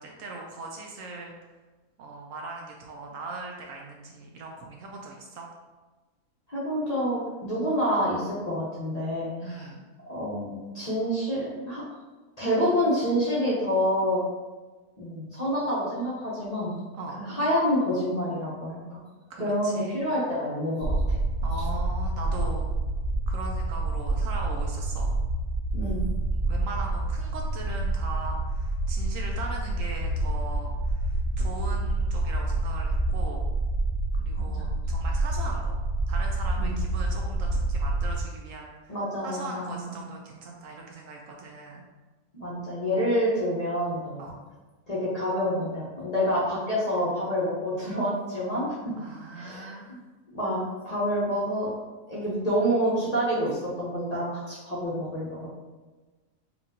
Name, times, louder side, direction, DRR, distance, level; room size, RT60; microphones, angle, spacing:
voice 1, 0.0-1.3 2.0-5.5 9.4-9.8 16.9-17.2 19.3-20.0 21.4-22.6 23.3-25.1 26.3-33.5 34.1-35.8 36.1-39.0 39.2-41.8 44.2-44.4 49.0-50.0, right 3 dB, 70° right, 0 dB, 0.9 m, -39 dB
voice 2, 6.5-9.7 10.1-11.8 12.4-14.2 15.0-16.7 17.2-19.0 19.4-21.2 25.7-26.1 34.3-34.7 36.6-36.7 38.9-40.0 42.3-44.2 44.9-48.8 49.3-50.0 50.3-51.7 52.1-55.5, equal, 35° left, -7 dB, 0.8 m, -28 dB
sound 1, 20.8-38.2, right 2 dB, 40° right, 1.0 m, -28 dB
5.8 x 2.5 x 2.7 m, 1.3 s
omnidirectional pair, 1.6 m